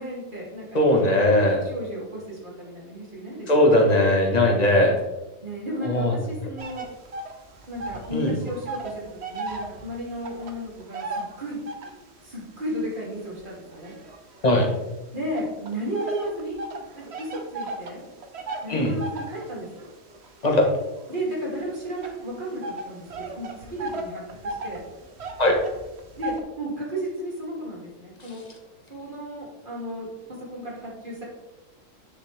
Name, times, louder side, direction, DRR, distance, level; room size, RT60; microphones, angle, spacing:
voice 1, 0.0-0.8 1.2-1.3 1.6-3.5 3.7-3.9 5.4-6.9 7.7-11.6 12.2-14.0 15.1-16.6 16.9-18.0 18.6-19.9 21.1-24.8 26.2-28.4 28.9-30.1 30.4-31.2, equal, 40° right, -5 dB, 2.9 m, -34 dB
voice 2, 0.7-1.6 3.5-5.0 5.8-6.1 8.1-8.4 14.4-14.7 18.7-18.9 20.4-20.7 25.4-25.6, left 1 dB, 30° left, 1 dB, 1.4 m, -19 dB
sound 1, 6.6-8.2 8.4-12.1 12.7-14.7 15.4-26.4, right 2 dB, 55° right, 1.2 m, -36 dB
10.0 x 6.3 x 3.5 m, 1.1 s
omnidirectional pair, 1.3 m